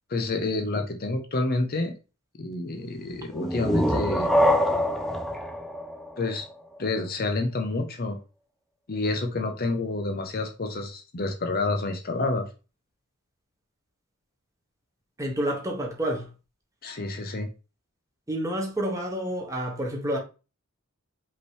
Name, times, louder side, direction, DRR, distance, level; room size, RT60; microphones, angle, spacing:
voice 1, 0.1-1.9 2.4-4.3 6.2-6.4 6.8-8.2 8.9-12.5 16.8-17.5, left 2 dB, 45° left, 0.7 m, -28 dB
sound 1, 3.3-6.9, equal, ahead, 0.4 m, -25 dB
voice 2, 15.2-16.3 18.3-20.2, right 1 dB, 15° right, 1.1 m, -29 dB
5.3 x 3.0 x 3.1 m
head